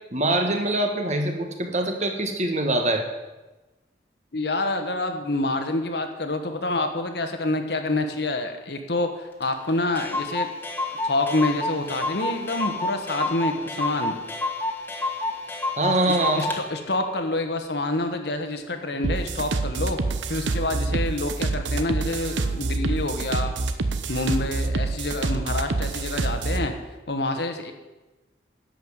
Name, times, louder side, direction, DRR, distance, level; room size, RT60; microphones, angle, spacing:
voice 1, 0.1-3.1 15.8-16.5, right 2 dB, 40° right, 4 dB, 1.4 m, -24 dB
voice 2, 4.3-10.5 11.0-14.2 16.0-20.0 20.3-23.5 24.1-26.7 27.1-27.7, left 2 dB, 60° left, 6 dB, 1.3 m, -27 dB
Clock, 9.4-9.5 9.7-9.8 10.0-16.6, left 2 dB, 10° left, 1.4 m, -29 dB
sound 1, 19.0-26.7, right 3 dB, 85° right, 0.8 m, -26 dB
11.5 x 5.6 x 8.0 m, 1.1 s
head